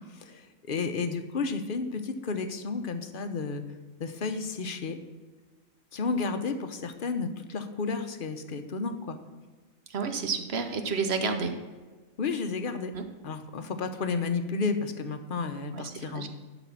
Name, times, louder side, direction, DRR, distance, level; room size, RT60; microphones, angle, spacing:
voice 1, 0.0-3.6 4.0-5.0 5.9-9.2 12.2-12.9 13.2-16.3, left 4 dB, 45° left, 8 dB, 0.8 m, -32 dB
voice 2, 9.9-11.5 12.9-13.0 15.7-16.3, right 5 dB, 55° right, 7 dB, 1.1 m, -30 dB
11.0 x 4.1 x 7.2 m, 1.3 s
omnidirectional pair, 1.4 m